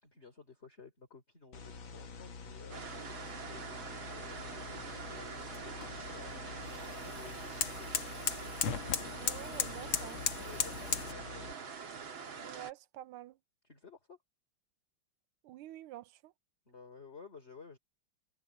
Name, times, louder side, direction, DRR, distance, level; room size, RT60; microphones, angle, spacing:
voice 1, 0.0-2.8 3.4-8.2 10.5-11.7 13.6-14.2 16.7-17.8, left 4 dB, 30° left, 3.8 m, -54 dB
sound 1, 1.5-11.5, left 5 dB, 70° left, 2.6 m, -48 dB
sound 2, 2.7-12.7, right 6 dB, 65° right, 2.9 m, -45 dB
sound 3, 4.3-11.1, left 8 dB, 85° left, 2.2 m, -38 dB
voice 2, 9.2-10.2 12.4-13.4 15.4-16.3, right 14 dB, 90° right, 1.6 m, -48 dB
omnidirectional pair, 2.3 m